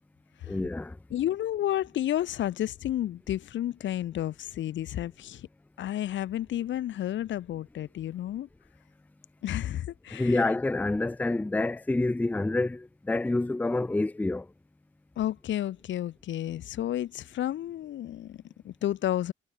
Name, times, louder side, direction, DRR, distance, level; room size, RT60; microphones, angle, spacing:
voice 1, 0.4-1.0 10.1-14.5, left 2 dB, 10° left, 0.5 m, -28 dB
voice 2, 1.1-5.5 5.8-8.5 9.4-10.4 15.2-19.3, left 12 dB, 70° left, 1.1 m, -31 dB
cardioid pair, 90°, 20 cm